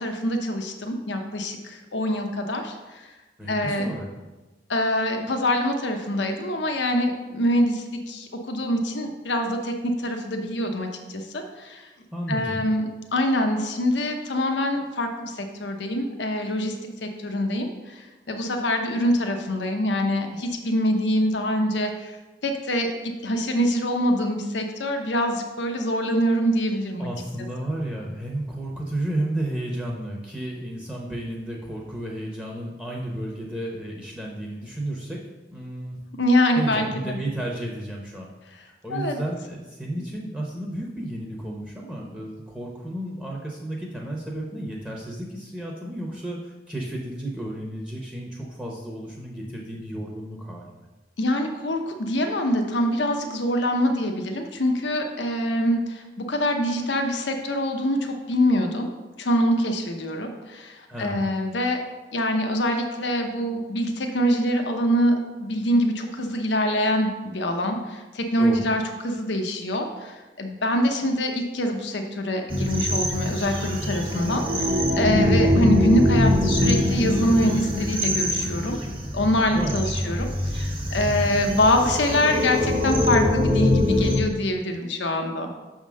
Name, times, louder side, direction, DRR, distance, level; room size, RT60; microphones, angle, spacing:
voice 1, 0.0-3.0 3.5-3.9 4.7-11.9 12.3-16.7 17.0-22.1 22.4-27.1 36.2-37.2 38.9-39.2 51.2-58.9 59.2-61.8 62.1-78.8 79.1-80.3 80.5-85.5, equal, 75° left, 4 dB, 0.8 m, -24 dB
voice 2, 3.4-4.1 12.1-12.6 27.0-35.2 35.5-36.0 36.6-38.3 38.8-50.7 60.9-61.3 68.4-68.7 79.5-80.2, right 1 dB, 5° right, -2 dB, 0.9 m, -32 dB
sound 1, 72.5-84.2, left 1 dB, 25° right, 1.1 m, -23 dB
6.4 x 3.7 x 6.2 m, 1.1 s
head